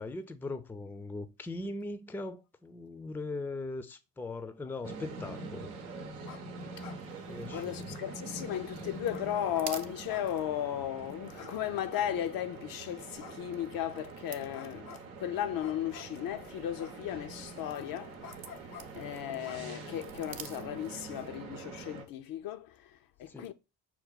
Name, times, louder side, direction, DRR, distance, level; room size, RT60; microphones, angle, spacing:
voice 1, 0.0-5.7 7.3-8.0 23.3-23.5, left 2 dB, 5° left, 0.4 m, -40 dB
sound 1, 4.8-22.0, right 3 dB, 85° right, 0.8 m, -45 dB
sound 2, 6.2-6.4 6.7-7.0 7.5-8.3 9.1-9.7 10.1-10.8 11.4-11.5 11.9-12.5 13.2-13.9 14.5-15.0 15.6-16.2 16.8-17.4 18.2-18.8 19.4-20.2, left 7 dB, 90° left, 0.7 m, -50 dB
sound 3, 7.1-21.4, right 9 dB, 55° right, 0.7 m, -53 dB
voice 2, 7.5-18.2 18.5-23.5, left 11 dB, 55° left, 0.5 m, -36 dB
5.8 x 2.2 x 4.0 m
hypercardioid pair, 55°, 43 cm